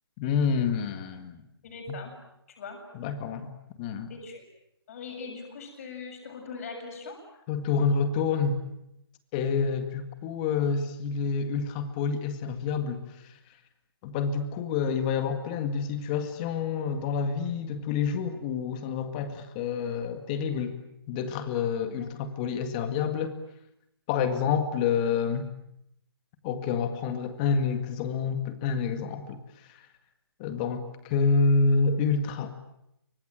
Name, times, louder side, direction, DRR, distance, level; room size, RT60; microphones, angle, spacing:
voice 1, 0.2-1.4 1.9-2.0 2.9-4.1 7.5-8.6 9.3-13.0 14.0-20.8 21.1-23.4 24.1-25.5 26.4-29.4 30.4-32.5, left 5 dB, 20° left, 9 dB, 1.9 m, -28 dB
voice 2, 1.6-2.1 2.6-2.8 4.1-4.4 4.9-7.2 22.0-22.1, left 4 dB, 35° left, 3 dB, 7.3 m, -40 dB
26.0 x 24.5 x 9.0 m, 0.79 s
hypercardioid pair, 165°, 13 cm